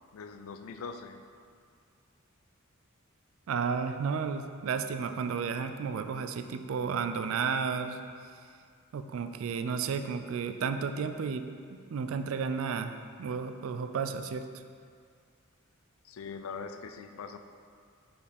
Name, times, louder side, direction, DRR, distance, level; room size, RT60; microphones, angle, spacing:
voice 1, 0.1-1.2 16.0-17.4, left 5 dB, 80° left, 8 dB, 0.4 m, -42 dB
voice 2, 3.5-8.0 8.9-11.5 11.7-14.5, right 5 dB, 70° right, 8 dB, 0.3 m, -32 dB
5.3 x 4.2 x 5.1 m, 2.2 s
head